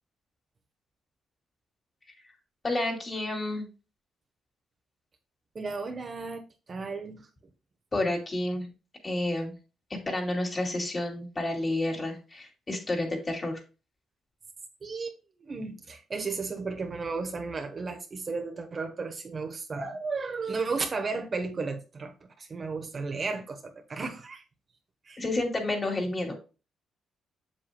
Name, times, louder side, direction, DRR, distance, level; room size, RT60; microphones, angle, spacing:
voice 1, 2.6-3.6 7.9-8.7 9.0-9.5 10.1-13.6 25.2-26.4, left 2 dB, 30° left, 2.7 m, -30 dB
voice 2, 5.5-7.3 14.8-24.4 25.1-25.2, right 4 dB, 40° right, 1.2 m, -34 dB
7.7 x 7.0 x 2.3 m
cardioid pair, 90°, 0 cm